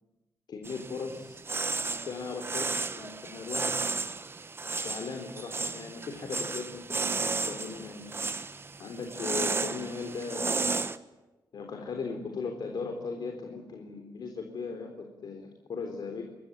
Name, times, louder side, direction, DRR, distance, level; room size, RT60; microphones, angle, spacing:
voice 1, 0.5-1.4 1.8-2.7 2.9-3.8 4.8-8.1 8.8-10.6 11.5-16.2, left 4 dB, 60° left, 4 dB, 3.9 m, -38 dB
sound 1, 0.6-11.0, right 4 dB, 30° right, 1.3 m, -33 dB
27.5 x 22.5 x 9.0 m, 1.1 s
wide cardioid pair, 140°, 8 cm